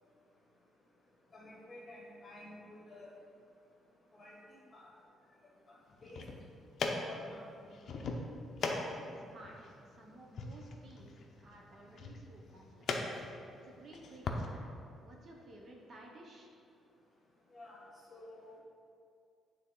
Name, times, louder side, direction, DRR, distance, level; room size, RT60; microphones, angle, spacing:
voice 1, 1.3-3.1 4.1-4.4 4.7-4.9 6.0-6.2 7.0-7.4 17.5-17.8 18.1-18.5, left 2 dB, 25° left, -4 dB, 1.5 m, -51 dB
sound 1, 5.9-14.4, left 3 dB, 55° left, 0.5 m, -41 dB
voice 2, 8.6-9.6 9.9-13.1 13.5-14.7 15.0-16.5, right 2 dB, 40° right, -1 dB, 0.7 m, -54 dB
8.2 x 3.4 x 3.8 m, 2.4 s
cardioid pair, 135°, 0 cm